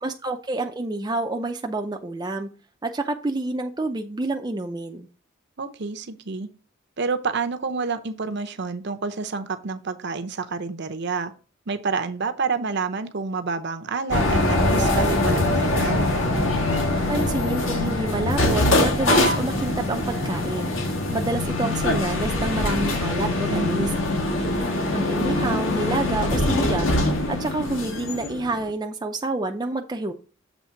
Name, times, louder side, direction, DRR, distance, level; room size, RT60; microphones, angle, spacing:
voice 1, 0.0-2.5 2.8-5.1 17.1-20.7 21.1-23.9 24.4-24.5 24.9-27.0 27.3-30.1, right 2 dB, 20° right, 4 dB, 0.5 m, -28 dB
voice 2, 5.6-6.5 7.0-11.3 11.7-16.0 23.5-24.0, right 4 dB, 55° right, 9 dB, 0.7 m, -28 dB
sound 1, 14.1-28.7, left 1 dB, 70° left, 1.6 m, -23 dB
7.2 x 3.5 x 5.7 m, 0.35 s
head